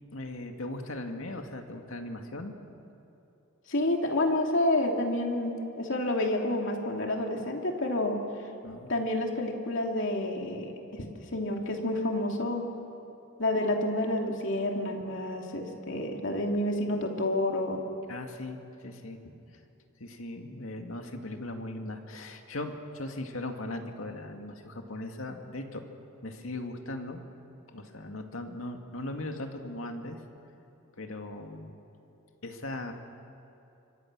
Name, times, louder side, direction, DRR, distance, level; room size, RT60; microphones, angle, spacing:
voice 1, 0.1-2.6 8.6-8.9 18.1-19.2 20.0-25.8 26.2-27.2 27.7-30.2 31.0-31.7 32.4-32.9, left 1 dB, 80° left, 4 dB, 2.2 m, -38 dB
voice 2, 3.7-8.2 8.9-11.0 11.3-12.6 13.4-17.8, left 1 dB, 60° left, 1 dB, 2.9 m, -29 dB
26.0 x 24.5 x 6.2 m, 2.9 s
head